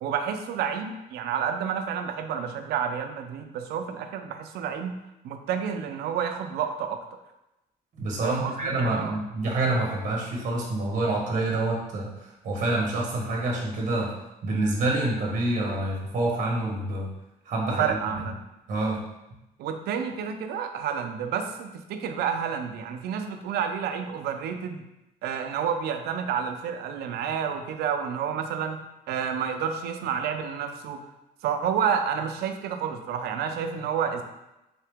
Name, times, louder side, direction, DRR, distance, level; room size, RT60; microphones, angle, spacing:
voice 1, 0.0-4.9 5.2-7.0 8.2-9.1 17.6-18.4 19.6-24.8 25.2-28.8 29.1-31.0 31.4-34.2, right 7 dB, 70° right, 6 dB, 0.5 m, -29 dB
voice 2, 8.0-14.1 14.4-17.1 17.5-17.8 18.7-19.0, right 2 dB, 45° right, -2 dB, 1.1 m, -27 dB
3.9 x 2.8 x 3.4 m, 0.94 s
cardioid pair, 110°, 17 cm